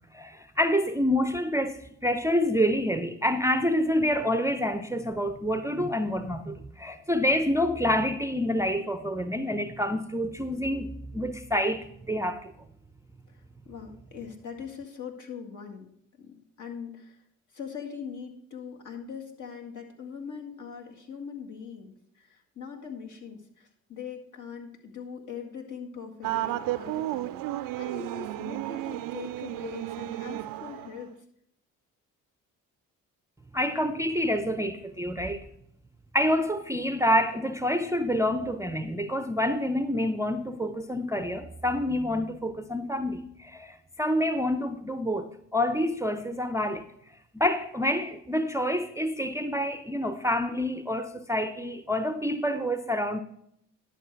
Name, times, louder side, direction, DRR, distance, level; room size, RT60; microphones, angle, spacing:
voice 1, 0.1-12.5 33.5-35.5 36.1-46.8 47.3-53.2, equal, 10° right, 0.6 m, -27 dB
voice 2, 13.3-15.9 16.1-17.2 17.5-31.1, left 6 dB, 50° left, 1.9 m, -41 dB
sound 1, 26.2-31.1, right 15 dB, 60° right, 0.5 m, -33 dB
11.0 x 6.5 x 4.6 m
hypercardioid pair, 50°, 37 cm